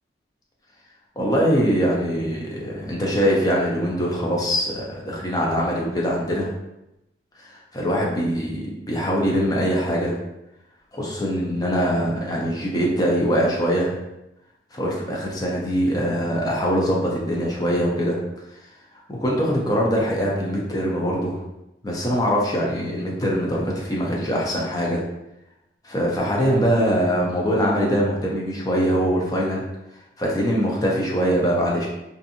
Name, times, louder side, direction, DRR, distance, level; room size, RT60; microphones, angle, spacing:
voice 1, 1.2-6.5 7.4-10.2 10.9-13.9 14.7-18.2 19.1-21.4 21.8-25.0 25.8-29.6 30.2-31.9, equal, 20° left, -3 dB, 0.5 m, -23 dB
2.6 x 2.5 x 2.6 m, 0.89 s
head